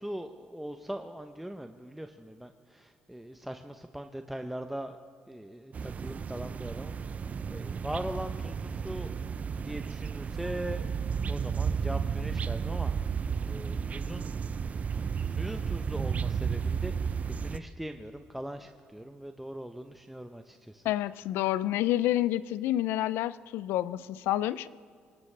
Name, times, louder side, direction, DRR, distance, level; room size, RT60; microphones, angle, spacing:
voice 1, 0.0-5.0 5.3-9.1 9.5-10.9 11.3-14.4 14.9-20.8, right 1 dB, 5° right, 6 dB, 0.7 m, -41 dB
sound 1, 5.7-17.6, right 6 dB, 40° right, 0.5 m, -33 dB
voice 2, 20.8-24.7, left 14 dB, 80° left, 17 dB, 0.4 m, -29 dB
23.0 x 17.5 x 3.3 m, 2.2 s
supercardioid pair, 80°, 4 cm